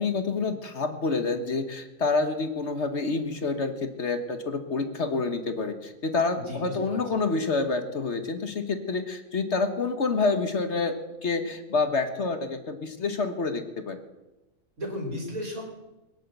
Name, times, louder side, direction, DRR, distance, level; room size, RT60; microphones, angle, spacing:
voice 1, 0.0-11.0 11.2-14.0, left 4 dB, 50° left, 8 dB, 1.4 m, -28 dB
voice 2, 6.3-7.0 14.8-15.6, left 1 dB, 70° right, 1 dB, 4.4 m, -34 dB
22.5 x 8.0 x 8.0 m, 1.1 s
omnidirectional pair, 1.6 m